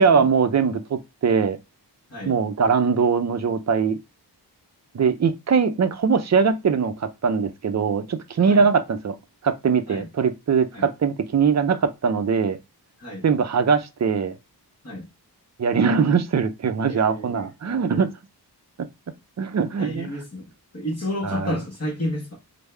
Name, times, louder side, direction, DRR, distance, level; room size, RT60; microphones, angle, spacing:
voice 1, 0.0-1.6 2.2-4.0 4.9-9.2 9.4-12.6 13.2-14.3 15.6-18.1 18.8-18.9 19.4-20.1 21.2-21.6, right 6 dB, 40° right, 0.5 m, -21 dB
voice 2, 16.9-17.5 17.9-18.1 19.8-22.4, left 1 dB, 35° left, 1.0 m, -31 dB
3.4 x 2.0 x 3.2 m
wide cardioid pair, 80°, 41 cm